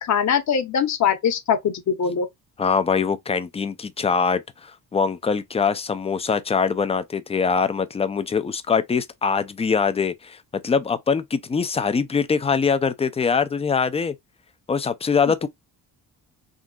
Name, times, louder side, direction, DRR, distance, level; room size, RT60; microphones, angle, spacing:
voice 1, 0.0-2.3, left 7 dB, 45° left, 0.8 m, -22 dB
voice 2, 2.6-14.1 14.7-15.5, left 5 dB, 15° left, 0.3 m, -23 dB
3.7 x 2.6 x 2.3 m
cardioid pair, 120°, 40 cm